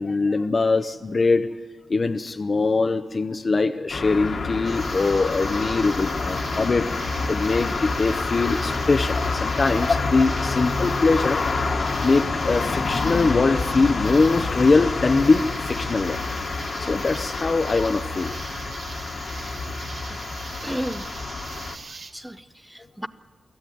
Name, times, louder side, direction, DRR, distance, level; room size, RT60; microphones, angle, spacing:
voice 1, 0.0-1.5 1.9-11.4 12.0-16.2 16.8-18.4, left 3 dB, 35° left, 8 dB, 0.7 m, -22 dB
sound 1, 3.9-21.8, left 4 dB, 55° left, 1.6 m, -27 dB
sound 2, 4.6-22.1, right 4 dB, 60° right, 2.1 m, -40 dB
voice 2, 19.4-20.2 20.6-21.1 21.9-23.1, equal, 5° right, 12 dB, 0.8 m, -35 dB
24.0 x 15.0 x 9.2 m, 1.4 s
wide cardioid pair, 145°, 0 cm